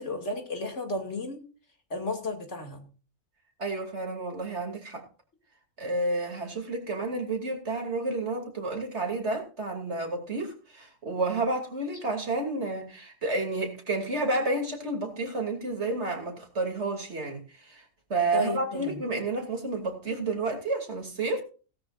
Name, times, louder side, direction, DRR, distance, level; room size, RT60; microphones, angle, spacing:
voice 1, 0.0-1.4 1.9-2.8 18.3-19.0, left 1 dB, 60° left, 4 dB, 2.8 m, -32 dB
voice 2, 3.6-5.0 5.8-17.8 18.1-21.4, right 2 dB, 55° right, 2 dB, 3.1 m, -30 dB
17.5 x 12.5 x 2.5 m, 0.35 s
omnidirectional pair, 1.4 m